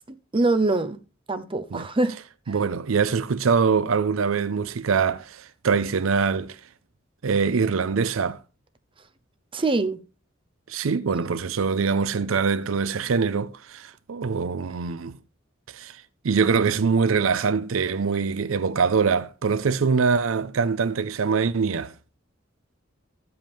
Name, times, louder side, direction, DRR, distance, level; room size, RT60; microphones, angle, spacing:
voice 1, 0.3-1.0 1.3-2.2 2.5-2.6 9.5-10.0, right 2 dB, 25° right, 0.7 m, -23 dB
voice 2, 2.5-6.6 7.2-8.4 10.7-15.2 15.7-16.0 16.2-21.9, right 5 dB, 90° right, 0.5 m, -23 dB
13.5 x 7.9 x 3.5 m
head